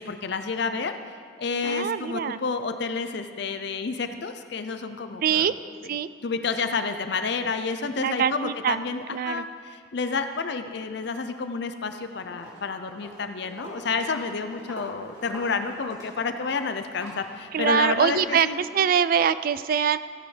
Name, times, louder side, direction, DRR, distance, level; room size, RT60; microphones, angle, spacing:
voice 1, 0.0-5.6 6.2-18.6, left 4 dB, 60° left, 8 dB, 0.5 m, -30 dB
voice 2, 1.6-2.4 5.2-5.5 5.9-6.1 8.0-8.8 9.1-9.4 17.5-18.5 18.7-20.0, right 7 dB, 50° right, 14 dB, 0.3 m, -23 dB
Walk footsteps, 11.7-12.0 12.3-18.4, equal, 20° right, 2.5 m, -44 dB
15.5 x 8.5 x 3.3 m, 2.1 s
head